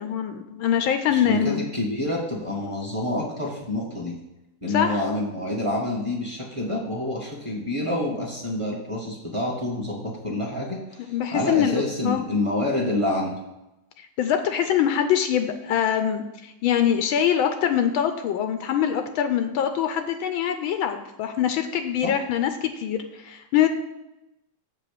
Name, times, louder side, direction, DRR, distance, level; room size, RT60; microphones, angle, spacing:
voice 1, 0.0-1.7 4.7-5.0 11.0-12.2 14.0-23.7, left 9 dB, 75° left, 7 dB, 1.4 m, -24 dB
voice 2, 1.1-4.1 4.6-13.4 22.0-22.1, left 1 dB, 15° right, -3 dB, 1.8 m, -28 dB
7.5 x 4.9 x 7.0 m, 0.93 s
omnidirectional pair, 2.3 m